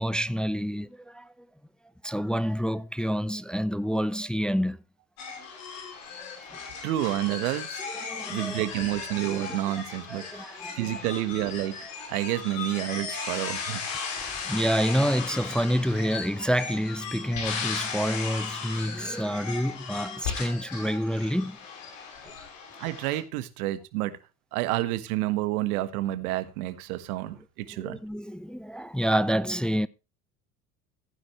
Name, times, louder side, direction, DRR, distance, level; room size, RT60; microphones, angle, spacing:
voice 1, 0.0-1.3 2.0-4.8 7.9-8.6 10.1-10.9 14.4-21.6 27.7-29.9, equal, ahead, 0.5 m, -28 dB
sound 1, 5.2-23.2, left 5 dB, 70° left, 6.3 m, -36 dB
voice 2, 6.8-7.8 8.3-10.4 10.7-11.7 12.1-13.8 22.8-24.1 24.5-28.0, right 15 dB, 75° right, 1.5 m, -29 dB
15.5 x 9.8 x 3.2 m
hypercardioid pair, 75°, 44 cm